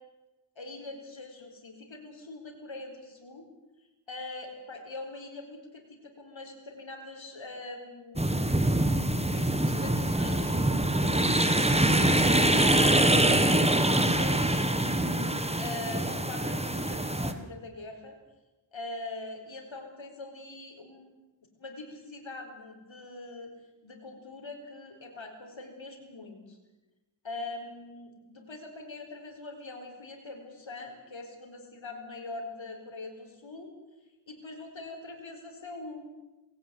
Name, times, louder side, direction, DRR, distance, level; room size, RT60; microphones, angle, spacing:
voice 1, 0.5-3.4 4.1-8.6 9.3-12.4 12.7-18.2 18.7-21.2 21.6-23.5 23.8-26.6 27.2-33.7 34.3-36.0, left 2 dB, 75° left, 3 dB, 4.8 m, -43 dB
sound 1, 8.2-17.3, right 1 dB, 15° right, 1.8 m, -24 dB
20.5 x 17.0 x 8.4 m, 1.1 s
wide cardioid pair, 70°, 46 cm